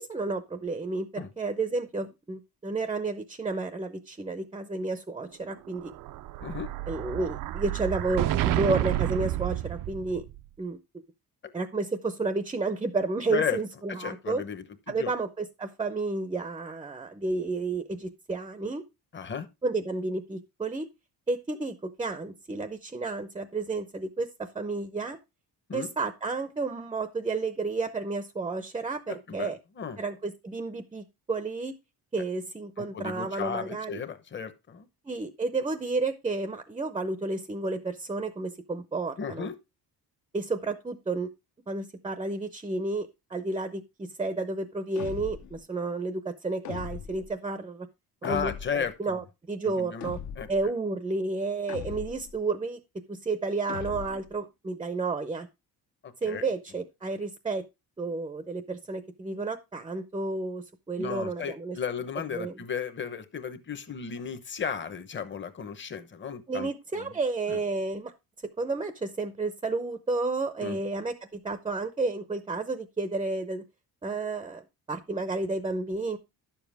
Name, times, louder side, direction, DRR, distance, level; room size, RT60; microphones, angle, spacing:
voice 1, 0.0-5.9 6.9-10.2 10.6-10.8 11.5-14.4 14.9-18.8 19.6-20.9 21.3-25.2 25.7-29.6 30.0-31.7 32.1-34.0 35.1-39.5 40.3-41.3 41.7-47.9 48.2-48.5 49.0-50.2 50.5-52.8 53.1-55.5 56.2-57.6 58.0-61.8 62.3-62.5 66.5-68.1 68.6-73.6 74.0-76.2, right 3 dB, 15° right, 0.6 m, -31 dB
Explosion, 5.7-10.4, right 14 dB, 60° right, 0.5 m, -30 dB
voice 2, 13.9-15.1 19.1-19.5 25.7-25.9 29.1-30.0 32.8-34.9 39.2-39.5 48.2-49.2 49.6-50.1 50.4-50.5 56.0-56.4 61.0-66.7 67.0-67.1 67.5-67.6 70.6-70.8, left 7 dB, 30° left, 1.0 m, -34 dB
sound 1, 45.0-45.6 46.7-47.3 48.2-48.9 50.0-50.6 51.7-52.4 53.7-54.3, left 9 dB, 45° left, 0.7 m, -39 dB
11.0 x 7.2 x 3.4 m
cardioid pair, 170°, 39 cm